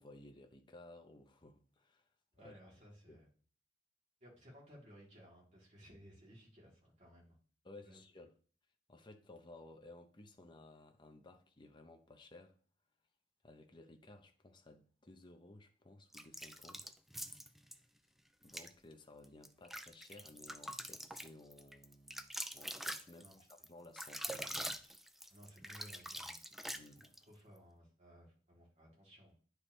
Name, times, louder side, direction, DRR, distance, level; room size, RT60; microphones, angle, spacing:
voice 1, 0.0-2.1 2.4-2.6 3.1-3.2 7.6-8.3 8.9-12.6 13.4-16.9 18.4-24.7 26.7-27.1, left 2 dB, 25° left, 0.8 m, -57 dB
voice 2, 2.3-3.3 4.2-7.4 7.8-8.2 23.2-23.4 25.3-26.4 27.2-29.4, equal, 40° right, 3.3 m, -59 dB
sound 1, 16.1-17.8 18.4-18.7 19.2-27.2, equal, ahead, 0.4 m, -45 dB
10.0 x 4.7 x 3.3 m
head